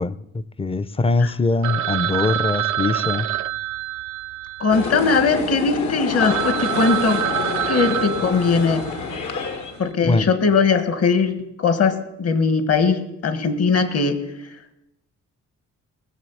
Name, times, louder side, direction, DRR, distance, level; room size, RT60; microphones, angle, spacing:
voice 1, 0.0-3.3 10.0-10.3, left 3 dB, 20° left, 17 dB, 0.5 m, -22 dB
Telephone, 1.6-5.4 5.9-6.0 6.2-9.1, right 12 dB, 75° right, 0.4 m, -26 dB
voice 2, 4.6-7.2 7.7-8.9 9.8-14.2, left 4 dB, 55° left, 11 dB, 1.6 m, -20 dB
sound 1, 4.7-9.9, left 5 dB, 75° left, 1.7 m, -28 dB
19.5 x 6.9 x 7.1 m, 0.88 s
cardioid pair, 90°, 30 cm